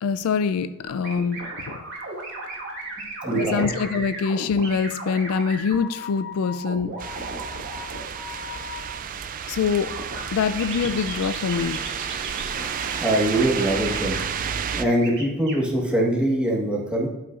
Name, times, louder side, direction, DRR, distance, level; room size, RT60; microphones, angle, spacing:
voice 1, 0.0-1.8 3.3-7.0 9.5-9.9 10.3-11.9, left 5 dB, 75° left, 0.3 m, -24 dB
sound 1, 0.8-8.8 9.9-10.2 10.5-14.2 14.8-15.5, right 1 dB, 55° right, 2.2 m, -36 dB
voice 2, 3.2-3.7 13.0-14.2 14.8-17.1, right 1 dB, 5° right, 1.3 m, -22 dB
sound 2, 7.0-14.8, right 7 dB, 40° right, 0.3 m, -31 dB
12.0 x 5.6 x 2.4 m
head